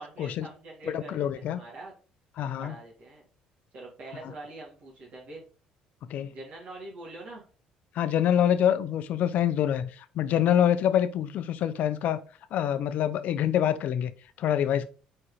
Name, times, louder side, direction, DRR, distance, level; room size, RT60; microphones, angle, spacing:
voice 1, 0.0-1.9 2.4-3.2 3.7-5.5 6.3-7.5, right 2 dB, 60° right, 2.2 m, -44 dB
voice 2, 0.8-1.6 2.4-2.7 4.2-4.3 6.1-6.3 7.9-12.2 12.5-14.1 14.4-14.9, left 10 dB, 65° left, 0.6 m, -26 dB
4.8 x 4.3 x 4.8 m
supercardioid pair, 75°, 3 cm